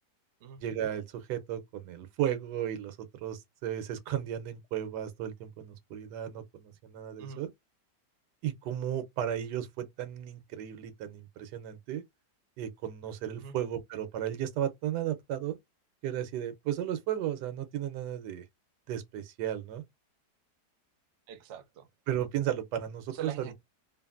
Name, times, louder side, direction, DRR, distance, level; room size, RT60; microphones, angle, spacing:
voice 1, 0.6-1.0 1.3-7.5 8.4-12.0 12.6-15.6 16.0-18.4 18.9-19.8 22.1-23.3, right 10 dB, 90° right, 1.3 m, -34 dB
voice 2, 21.3-21.9 23.1-23.5, right 8 dB, 60° right, 0.7 m, -42 dB
2.8 x 2.5 x 2.4 m
omnidirectional pair, 1.8 m